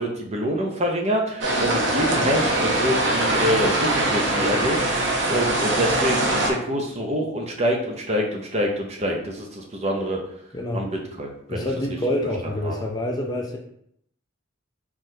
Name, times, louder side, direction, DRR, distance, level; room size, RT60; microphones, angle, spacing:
voice 1, 0.0-10.2 10.7-11.7 12.7-12.8, equal, 35° right, 1 dB, 0.6 m, -26 dB
sound 1, 1.4-6.5, right 1 dB, 65° right, 0.8 m, -22 dB
voice 2, 10.5-10.9 11.5-13.6, left 1 dB, 20° left, 1 dB, 0.4 m, -27 dB
3.8 x 3.1 x 2.7 m, 0.70 s
head